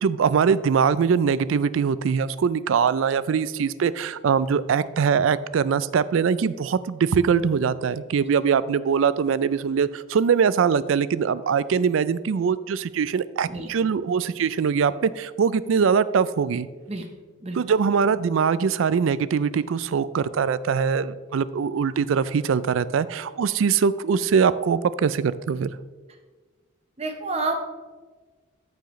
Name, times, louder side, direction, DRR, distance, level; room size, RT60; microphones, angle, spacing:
voice 1, 0.0-16.7 17.5-25.7, right 6 dB, 75° right, 16 dB, 0.4 m, -22 dB
voice 2, 13.5-13.9 16.9-17.0 17.4-17.6 27.0-27.6, right 3 dB, 30° right, 4 dB, 0.8 m, -29 dB
14.0 x 4.8 x 3.1 m, 1.4 s
head